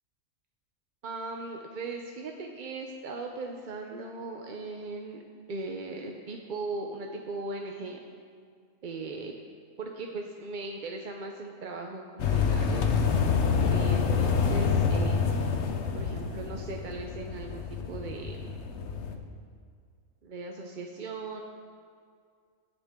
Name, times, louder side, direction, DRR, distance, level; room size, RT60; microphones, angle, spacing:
voice 1, 1.0-5.2 5.5-8.0 8.8-9.3 9.8-12.9 13.7-15.5 15.9-18.5 20.2-21.4, right 3 dB, 45° right, 2 dB, 0.7 m, -38 dB
sound 1, 12.2-19.2, left 5 dB, 60° left, 1.1 m, -27 dB
16.0 x 8.9 x 3.7 m, 2.1 s
omnidirectional pair, 1.4 m